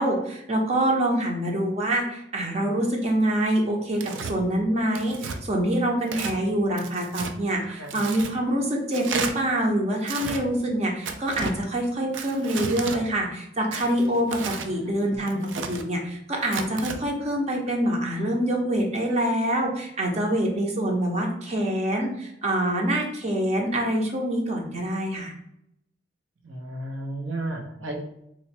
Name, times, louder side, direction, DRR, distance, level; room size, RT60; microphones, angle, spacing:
voice 1, 0.0-25.3, right 1 dB, 35° right, 1 dB, 0.6 m, -25 dB
Tearing, 4.0-4.3 4.9-5.4 6.0-6.4 6.8-7.3 7.9-8.3 8.9-9.3 10.0-10.4 11.0-11.6 12.1-13.0 13.7-14.7 15.3-15.8 16.4-17.0, right 5 dB, 75° right, 0.4 m, -33 dB
voice 2, 7.7-8.0 15.2-15.6 26.4-28.0, right 1 dB, 90° right, 1 dB, 0.8 m, -34 dB
3.0 x 2.2 x 4.2 m, 0.78 s
head